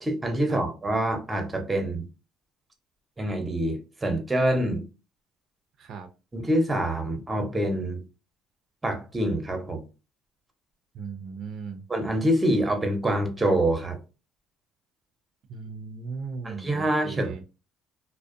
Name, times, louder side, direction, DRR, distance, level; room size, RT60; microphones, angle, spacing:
voice 1, 0.0-2.0 3.2-4.8 6.3-8.0 8.8-9.8 11.9-14.0 16.4-17.4, right 1 dB, 15° right, 0.7 m, -26 dB
voice 2, 10.9-11.8 15.5-17.4, right 5 dB, 60° right, 0.4 m, -37 dB
2.5 x 2.1 x 2.5 m
supercardioid pair, 95°, 0 cm